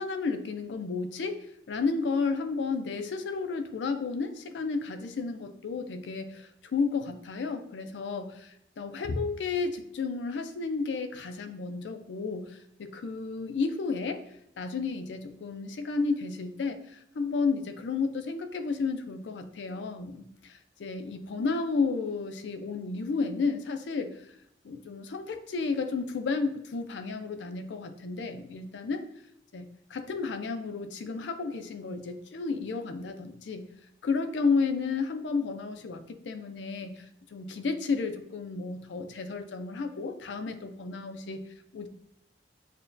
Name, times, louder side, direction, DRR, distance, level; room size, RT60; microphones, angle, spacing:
voice 1, 0.0-14.2 14.6-24.3 24.6-29.0 29.5-33.7 34.0-41.5 41.7-41.9, left 4 dB, 80° left, 8 dB, 0.4 m, -32 dB
6.5 x 2.2 x 2.5 m, 0.76 s
head